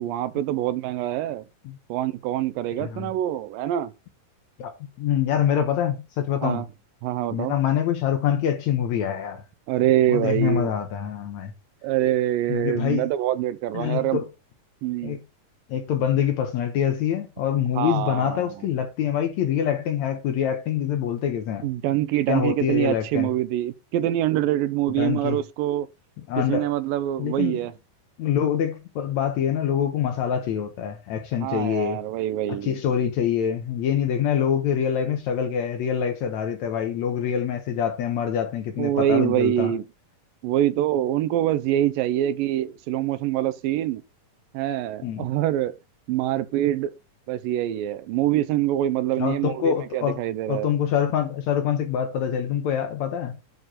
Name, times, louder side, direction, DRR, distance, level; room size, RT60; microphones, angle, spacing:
voice 1, 0.0-1.4 1.9-3.9 6.4-6.7 7.0-7.5 9.7-10.7 11.8-14.2 14.8-15.2 17.8-18.5 21.6-25.9 26.5-27.7 31.4-32.8 38.8-39.8 40.4-44.0 44.5-45.7 46.1-46.9 47.3-50.7, right 13 dB, 85° right, 2.4 m, -25 dB
voice 2, 2.8-3.1 4.6-4.7 5.0-6.6 7.3-9.4 10.1-11.5 12.5-13.1 13.7-14.3 15.0-15.2 15.7-21.7 22.3-23.3 25.0-25.4 26.3-26.7 27.2-27.6 28.2-32.0 32.6-39.7 45.0-45.3 49.2-50.2 50.5-53.4, left 9 dB, 70° left, 1.9 m, -25 dB
9.3 x 4.6 x 3.7 m
omnidirectional pair, 3.9 m